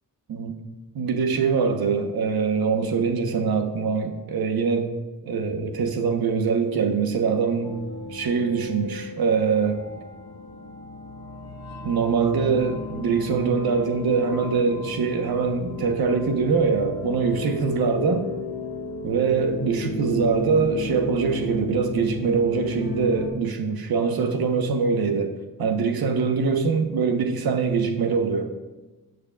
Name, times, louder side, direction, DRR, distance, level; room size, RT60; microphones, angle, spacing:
voice 1, 0.9-4.9 5.2-7.7 8.1-9.8 11.8-18.3 19.0-25.3 25.6-28.5, right 5 dB, 80° right, 5 dB, 1.1 m, -23 dB
sound 1, 7.6-23.3, left 3 dB, 80° left, 1.7 m, -34 dB
17.5 x 6.5 x 2.4 m, 1.1 s
wide cardioid pair, 175°, 37 cm